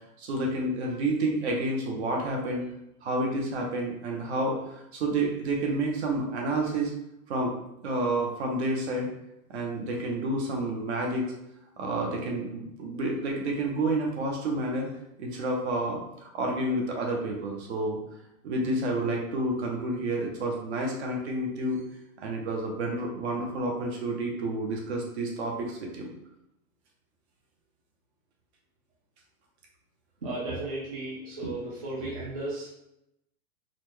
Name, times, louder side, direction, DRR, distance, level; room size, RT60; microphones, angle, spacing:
voice 1, 0.2-2.6 3.0-6.9 7.3-7.5 7.8-9.1 9.5-11.3 11.8-14.9 15.2-18.0 18.4-21.8 22.2-26.1, right 2 dB, 50° right, 0 dB, 0.9 m, -29 dB
voice 2, 30.2-32.7, right 2 dB, 25° right, -7 dB, 0.4 m, -34 dB
4.0 x 2.2 x 3.1 m, 0.84 s
hypercardioid pair, 170°, 44 cm